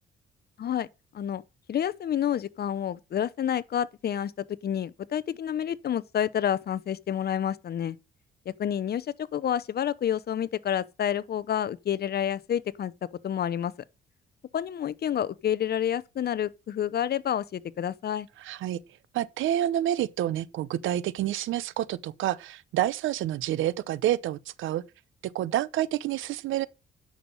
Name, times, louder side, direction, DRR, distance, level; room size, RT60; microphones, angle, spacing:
voice 1, 1.7-8.0 8.5-12.9 13.2-13.7 14.5-18.3, left 9 dB, 55° left, 0.8 m, -29 dB
voice 2, 18.4-18.8 19.1-24.8 25.2-26.7, right 12 dB, 80° right, 0.8 m, -28 dB
10.0 x 6.5 x 5.4 m
cardioid pair, 90°, 20 cm